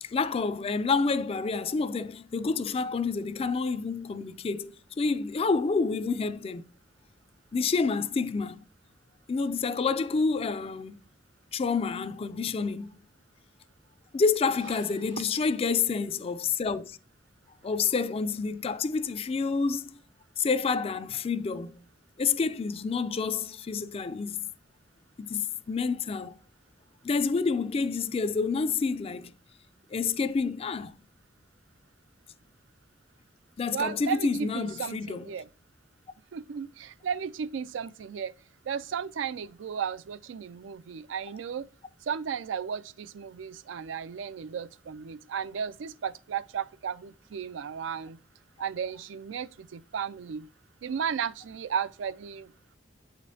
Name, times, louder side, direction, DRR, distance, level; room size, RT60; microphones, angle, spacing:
voice 1, 0.0-6.6 7.5-8.6 9.3-10.9 11.5-12.9 14.1-17.0 17.6-20.0 20.4-21.7 22.2-24.4 25.2-26.3 27.0-29.3 29.9-30.9 33.6-35.3, left 4 dB, 30° left, 0.3 m, -28 dB
voice 2, 33.7-35.5 36.3-38.3 38.7-41.6 42.1-48.2 48.6-50.5 50.8-52.5, right 7 dB, 75° right, 0.4 m, -34 dB
8.4 x 5.0 x 2.7 m
head